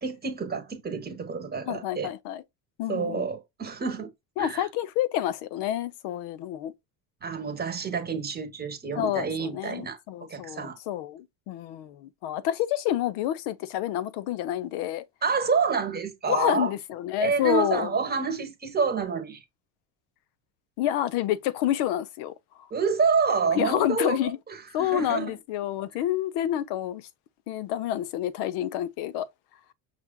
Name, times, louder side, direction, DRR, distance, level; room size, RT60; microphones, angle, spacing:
voice 1, 0.0-2.1 2.9-4.1 4.4-4.7 7.2-10.0 10.3-10.8 15.2-16.7 17.2-19.4 22.7-24.3 24.8-25.4, right 5 dB, 25° right, 1.0 m, -28 dB
voice 2, 1.6-2.4 2.8-3.3 4.4-6.7 9.0-15.1 16.3-17.9 20.8-22.3 23.6-24.4 24.7-27.0 27.5-29.3, left 12 dB, 75° left, 0.6 m, -28 dB
5.8 x 2.4 x 2.2 m
cardioid pair, 115°, 41 cm